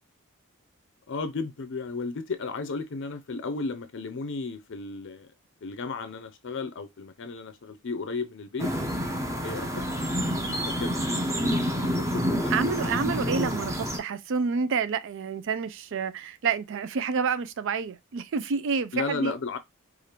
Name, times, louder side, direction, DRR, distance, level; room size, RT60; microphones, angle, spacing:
voice 1, 1.1-5.3 5.6-8.7 9.4-9.8 10.6-11.3 11.5-12.7 18.9-19.6, left 3 dB, 60° left, 0.5 m, -34 dB
sound 1, 8.6-14.0, equal, 15° right, 0.8 m, -28 dB
voice 2, 12.5-19.4, right 5 dB, 60° right, 0.4 m, -29 dB
4.9 x 2.5 x 2.9 m
head